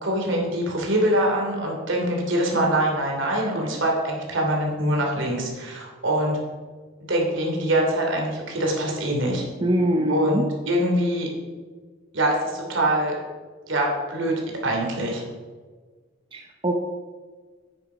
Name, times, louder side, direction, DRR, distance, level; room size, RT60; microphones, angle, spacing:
voice 1, 0.0-6.4 7.1-9.4 10.1-11.3 12.1-13.1 13.7-15.2, right 1 dB, 65° right, 0 dB, 2.8 m, -24 dB
voice 2, 9.6-10.4 16.3-16.7, right 1 dB, 25° right, 2 dB, 0.7 m, -23 dB
9.4 x 9.1 x 5.0 m, 1.4 s
head